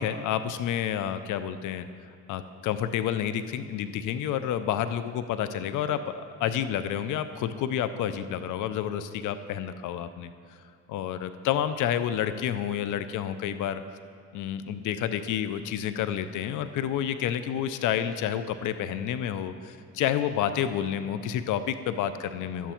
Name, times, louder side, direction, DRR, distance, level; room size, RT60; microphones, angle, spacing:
voice 1, 0.0-1.9 2.3-10.3 10.9-13.8 14.3-22.7, left 9 dB, 80° left, 11 dB, 0.5 m, -29 dB
12.5 x 9.3 x 4.4 m, 2.4 s
cardioid pair, 90°, 30 cm